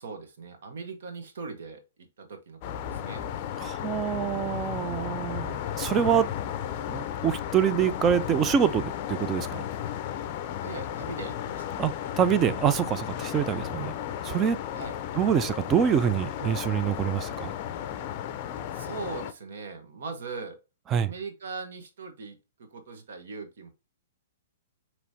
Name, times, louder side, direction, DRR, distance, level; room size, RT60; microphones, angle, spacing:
voice 1, 0.0-1.8 2.2-2.6 2.9-3.2 10.6-11.8 14.7-15.0 18.7-20.6 21.0-23.7, right 4 dB, 70° right, 1.0 m, -40 dB
sound 1, 2.6-19.3, left 10 dB, 45° left, 0.4 m, -34 dB
voice 2, 3.6-6.3 6.9-9.6 11.8-13.9 14.2-14.6 15.2-17.5 20.9-21.1, right 8 dB, 25° right, 0.4 m, -25 dB
4.7 x 3.0 x 2.7 m
hypercardioid pair, 135°, 0 cm